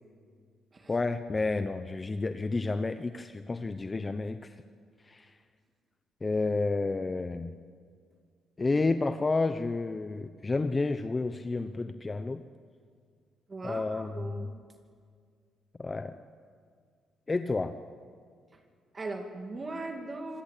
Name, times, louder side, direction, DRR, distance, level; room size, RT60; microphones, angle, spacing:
voice 1, 0.9-4.5 5.1-5.3 6.2-7.5 8.6-12.4 13.6-14.5 15.8-16.1 17.3-17.8, left 3 dB, 25° left, 10 dB, 0.8 m, -30 dB
voice 2, 13.5-14.5 18.9-20.4, right 2 dB, 30° right, 4 dB, 2.5 m, -39 dB
25.5 x 17.5 x 8.4 m, 2.1 s
cardioid pair, 90°, 0 cm